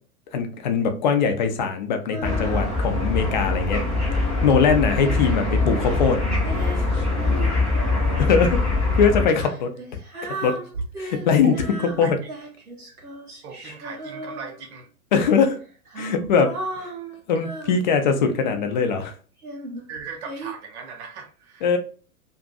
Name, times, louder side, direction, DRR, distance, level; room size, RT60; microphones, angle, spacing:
voice 1, 0.3-3.8 4.4-6.2 6.8-6.9 8.2-8.6 8.9-9.7 10.4-10.6 11.0-11.5 12.0-12.2 15.1-15.6 16.0-16.9 17.3-19.1 21.6-21.8, left 6 dB, 35° left, 6 dB, 0.4 m, -21 dB
Female singing, 2.1-3.2 3.7-8.5 9.3-14.8 15.6-18.7 19.4-20.5, right 2 dB, 90° right, 0.8 m, -36 dB
sound 1, 2.2-9.3, left 3 dB, ahead, 0.7 m, -23 dB
voice 2, 13.4-14.9 19.9-21.8, right 5 dB, 50° right, 2 dB, 0.5 m, -38 dB
2.5 x 2.4 x 2.2 m, 0.38 s
figure-of-eight pair, 95°, 44 cm